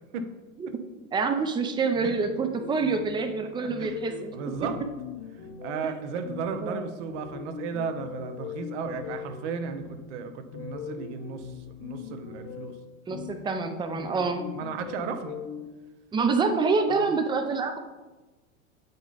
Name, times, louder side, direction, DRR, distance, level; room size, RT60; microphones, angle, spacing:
voice 1, 1.1-4.7 5.8-5.9 6.6-6.9 13.1-14.5 16.1-17.8, right 4 dB, 10° right, 7 dB, 0.5 m, -27 dB
sound 1, 1.9-15.7, left 7 dB, 30° left, 0.8 m, -41 dB
voice 2, 3.4-4.8 5.6-12.8 14.0-15.4 16.9-17.1, right 6 dB, 55° right, 8 dB, 1.0 m, -35 dB
8.4 x 5.2 x 4.0 m, 1.2 s
hypercardioid pair, 110°, 42 cm